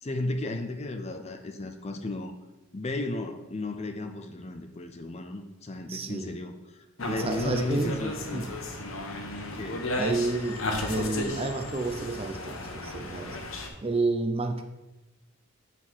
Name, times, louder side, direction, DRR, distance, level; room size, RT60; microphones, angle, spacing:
voice 1, 0.0-2.3 2.7-8.5 9.5-9.9, left 2 dB, 30° left, 6 dB, 0.5 m, -34 dB
voice 2, 5.9-6.3 7.1-8.0 8.3-8.5 10.0-13.4 13.8-14.6, right 3 dB, 25° right, 5 dB, 0.6 m, -30 dB
sound 1, 7.0-13.7, left 1 dB, 60° left, 1.0 m, -34 dB
7.4 x 4.1 x 6.2 m, 1.0 s
head